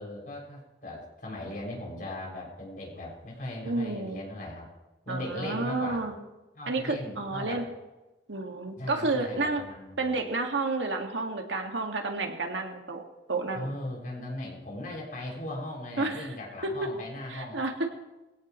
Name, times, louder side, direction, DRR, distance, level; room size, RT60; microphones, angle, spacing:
voice 1, 0.0-4.7 5.0-6.0 6.5-7.6 8.8-10.2 13.5-17.6, left 1 dB, 45° left, -2 dB, 6.6 m, -38 dB
voice 2, 3.6-4.2 5.1-6.2 6.7-7.6 8.3-9.6 10.0-13.7 16.0-16.3 16.6-16.9 17.3-17.9, right 3 dB, 90° right, 3 dB, 2.1 m, -30 dB
21.5 x 16.5 x 3.2 m, 1.1 s
head